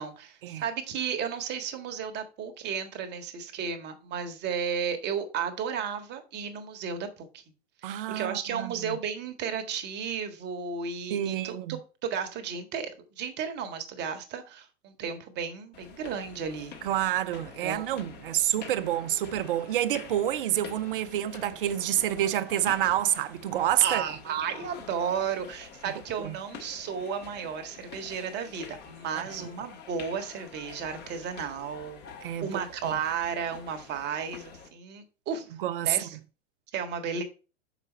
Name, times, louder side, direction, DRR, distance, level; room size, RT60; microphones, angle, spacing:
voice 1, 0.0-7.4 7.8-16.7 17.6-17.9 23.8-32.0 32.4-35.6 35.8-36.2 36.7-37.2, right 7 dB, 30° right, 1.3 m, -33 dB
voice 2, 7.8-9.0 11.1-11.8 16.8-24.0 26.2-26.3 29.4-29.5 32.2-32.6 35.6-36.1, right 12 dB, 50° right, 0.7 m, -28 dB
sound 1, 15.7-34.7, left 6 dB, 30° left, 1.5 m, -47 dB
6.5 x 5.1 x 4.2 m
figure-of-eight pair, 95°, 36 cm